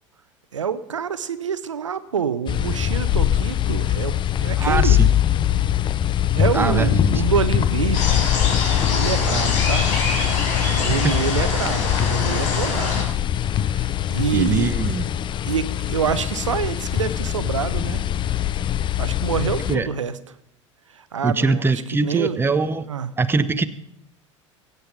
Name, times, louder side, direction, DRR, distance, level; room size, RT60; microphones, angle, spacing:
voice 1, 0.5-5.0 6.3-8.3 8.8-9.9 10.8-13.2 13.6-14.7 15.5-18.0 19.0-20.1 21.0-21.6 21.9-22.4 22.9-23.1, right 7 dB, 80° right, 14 dB, 0.8 m, -26 dB
sound 1, 2.5-19.8, left 11 dB, 30° left, 0.6 m, -22 dB
voice 2, 4.6-5.1 6.5-7.2 10.9-11.1 14.3-15.1 19.7-19.9 21.2-22.9 23.2-23.7, right 4 dB, 15° right, 11 dB, 0.9 m, -22 dB
sound 2, 7.9-13.0, left 4 dB, 50° left, 4.4 m, -25 dB
24.0 x 8.2 x 4.8 m, 0.77 s
figure-of-eight pair, 75°, 16 cm